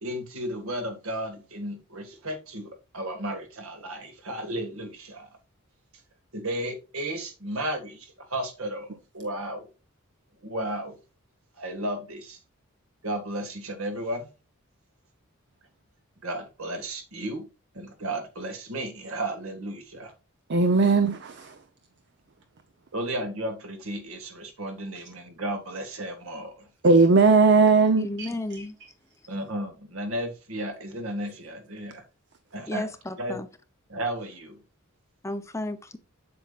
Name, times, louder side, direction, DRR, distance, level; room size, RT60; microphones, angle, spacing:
voice 1, 0.0-5.3 6.3-9.7 10.4-11.0 11.6-12.4 13.0-14.3 16.2-17.5 17.7-20.1 22.9-26.7 29.3-32.0 32.5-32.9 33.2-33.4 33.9-34.6, right 1 dB, 70° right, 1.8 m, -34 dB
voice 2, 20.5-21.5 26.8-28.3, right 4 dB, 55° right, 0.7 m, -18 dB
voice 3, 28.0-28.8 32.7-33.5 35.2-36.0, left 1 dB, 15° left, 0.6 m, -33 dB
7.9 x 7.0 x 2.4 m
head